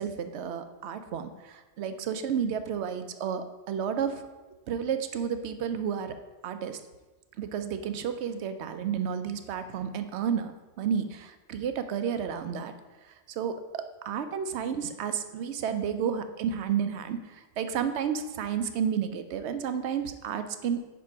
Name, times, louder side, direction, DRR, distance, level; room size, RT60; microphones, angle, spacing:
voice 1, 0.0-4.2 4.7-6.2 6.4-6.8 7.4-12.7 13.1-20.8, right 7 dB, 65° right, 9 dB, 0.8 m, -31 dB
4.9 x 4.6 x 5.8 m, 1.2 s
omnidirectional pair, 1.4 m